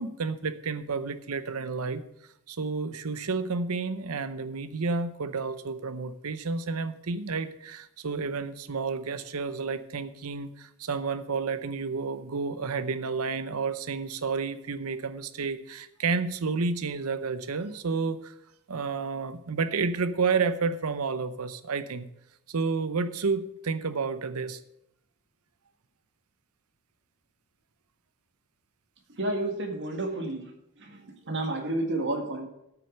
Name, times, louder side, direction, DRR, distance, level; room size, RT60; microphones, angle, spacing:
voice 1, 0.0-2.0 2.5-18.3 18.7-22.1 22.5-24.6, right 4 dB, 80° right, 13 dB, 0.7 m, -30 dB
voice 2, 29.2-30.5 30.8-32.5, right 2 dB, 55° right, 3 dB, 1.8 m, -31 dB
9.1 x 6.4 x 6.5 m, 0.80 s
head